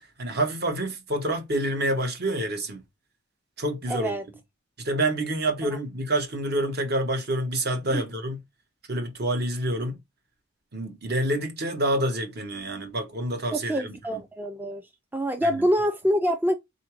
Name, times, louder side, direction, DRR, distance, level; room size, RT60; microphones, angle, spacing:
voice 1, 0.2-2.8 3.6-4.1 4.8-8.4 8.9-10.0 10.7-14.2 15.4-15.6, right 1 dB, 50° right, 1.0 m, -27 dB
voice 2, 3.9-4.2 7.9-8.0 13.5-14.8 15.1-16.6, equal, 10° right, 0.3 m, -25 dB
3.7 x 2.6 x 4.6 m
head